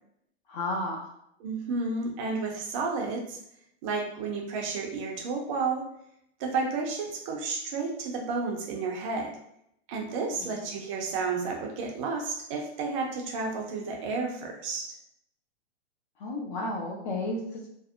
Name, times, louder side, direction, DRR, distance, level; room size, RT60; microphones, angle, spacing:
voice 1, 0.5-1.1 10.4-10.5 16.2-17.7, left 2 dB, 45° left, -1 dB, 0.5 m, -32 dB
voice 2, 1.4-3.4 3.8-5.8 6.4-9.3 9.9-15.0, right 4 dB, 30° right, 1 dB, 0.4 m, -31 dB
2.6 x 2.0 x 2.4 m, 0.75 s
hypercardioid pair, 130°, 36 cm